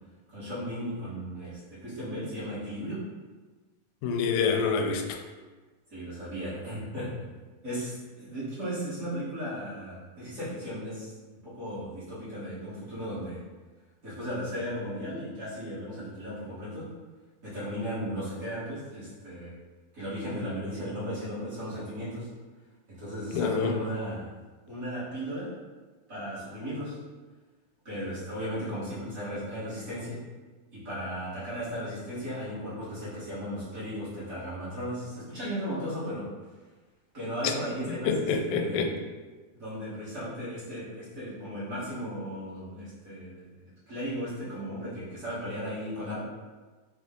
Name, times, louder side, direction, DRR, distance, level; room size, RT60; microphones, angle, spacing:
voice 1, 0.3-3.0 5.9-7.2 7.6-13.4 14.0-16.9 17.4-19.6 19.9-22.3 22.9-24.3 24.7-25.6 26.1-27.0 27.8-30.2 30.7-36.3 37.1-38.9 39.5-46.2, equal, 85° right, -12 dB, 0.7 m, -36 dB
voice 2, 4.0-5.2 23.3-23.8 37.4-37.5 38.0-38.9, left 5 dB, 85° left, 4 dB, 2.2 m, -26 dB
6.2 x 2.1 x 3.6 m, 1.3 s
omnidirectional pair, 4.0 m